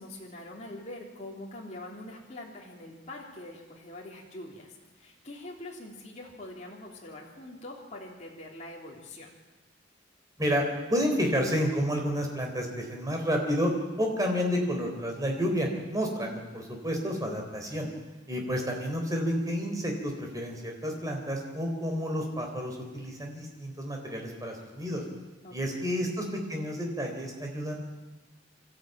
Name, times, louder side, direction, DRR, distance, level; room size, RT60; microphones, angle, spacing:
voice 1, 0.0-9.3 25.4-26.1, left 1 dB, 35° left, -2 dB, 3.4 m, -44 dB
voice 2, 10.9-13.7 14.0-17.9 18.3-25.0 25.5-27.8, equal, 15° right, 2 dB, 3.8 m, -30 dB
25.0 x 13.5 x 9.1 m, 1.2 s
head